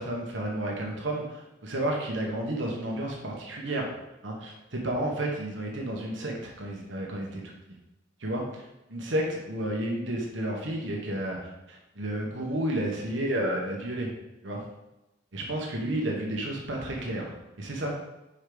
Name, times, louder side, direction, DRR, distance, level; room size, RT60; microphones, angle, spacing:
voice 1, 0.0-3.9 4.2-7.5 8.2-8.6 8.9-11.4 11.7-14.1 14.4-14.6 15.3-18.0, right 1 dB, 80° right, -1 dB, 1.2 m, -31 dB
6.2 x 4.9 x 3.9 m, 0.95 s
head